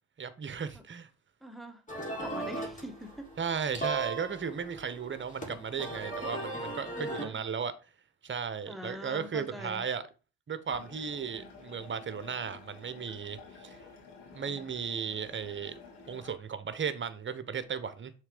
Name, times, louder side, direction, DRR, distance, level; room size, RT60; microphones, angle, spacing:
voice 1, 0.2-1.1 3.4-7.7 8.2-10.0 10.5-13.8 14.3-15.7 16.1-18.1, right 6 dB, 30° right, 1.0 m, -35 dB
voice 2, 1.4-1.8 2.2-3.3 6.9-7.4 8.7-9.8, equal, ahead, 1.4 m, -43 dB
sound 1, 1.9-7.3, right 2 dB, 20° left, 3.3 m, -38 dB
sound 2, 10.7-16.4, left 4 dB, 80° left, 2.1 m, -51 dB
6.4 x 3.7 x 5.1 m
hypercardioid pair, 55°, 38 cm